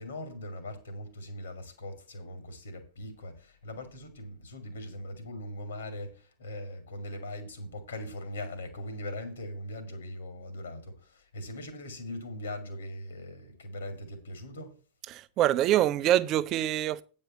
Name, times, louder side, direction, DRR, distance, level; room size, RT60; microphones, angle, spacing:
voice 1, 0.0-14.7, left 1 dB, 70° left, 2.3 m, -40 dB
voice 2, 15.1-17.0, right 12 dB, 35° right, 0.5 m, -25 dB
9.1 x 5.3 x 6.9 m
figure-of-eight pair, 90°, 0 cm